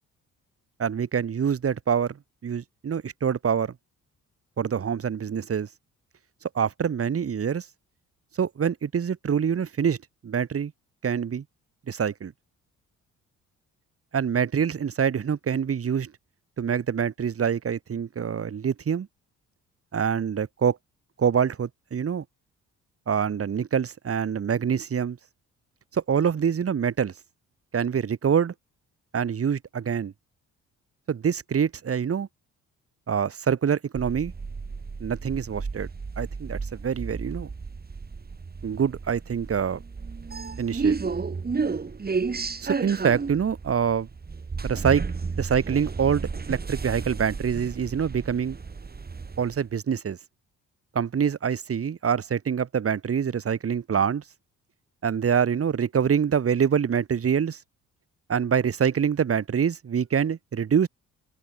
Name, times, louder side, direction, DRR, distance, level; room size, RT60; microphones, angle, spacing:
voice 1, 0.8-2.2 2.4-3.7 4.6-5.7 6.6-7.7 8.4-10.0 10.2-10.7 11.0-11.4 11.9-12.3 14.1-16.1 16.6-19.1 19.9-20.8 21.2-22.2 23.1-25.2 25.9-27.1 27.7-28.5 29.1-30.1 31.1-32.3 33.1-34.3 35.0-35.9 36.2-37.5 38.6-39.8 40.6-40.9 42.6-44.1 44.6-45.0 45.4-48.6 49.4-50.2 51.0-54.2 55.0-57.6 58.3-60.9, right 7 dB, 50° right, 5.3 m, -25 dB
sound 1, 34.0-49.6, right 4 dB, 30° right, 6.2 m, -32 dB
open air
cardioid pair, 90°, 30 cm